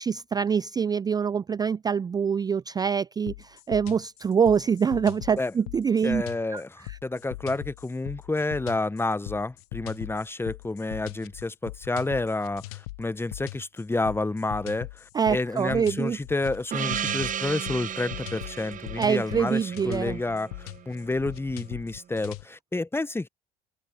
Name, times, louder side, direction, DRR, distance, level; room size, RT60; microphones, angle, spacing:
voice 1, 0.0-6.2 6.5-6.6 6.9-7.0 15.1-16.2 19.0-20.2, right 6 dB, 20° right, 0.4 m, -25 dB
sound 1, 3.3-22.5, left 19 dB, 80° left, 0.6 m, -41 dB
voice 2, 6.0-23.3, left 2 dB, 10° left, 1.1 m, -30 dB
Gong, 16.7-21.0, right 9 dB, 45° right, 1.0 m, -34 dB
open air
hypercardioid pair, 60°, 19 cm